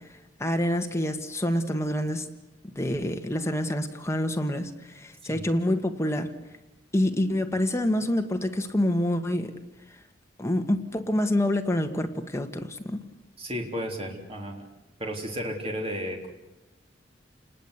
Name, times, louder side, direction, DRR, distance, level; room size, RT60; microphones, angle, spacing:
voice 1, 0.1-2.3 2.7-6.3 6.9-9.5 10.4-13.0, left 1 dB, 15° left, 5 dB, 1.7 m, -27 dB
voice 2, 13.4-14.6 15.0-16.3, equal, 30° right, 2 dB, 3.7 m, -33 dB
30.0 x 20.0 x 8.3 m, 1.0 s
head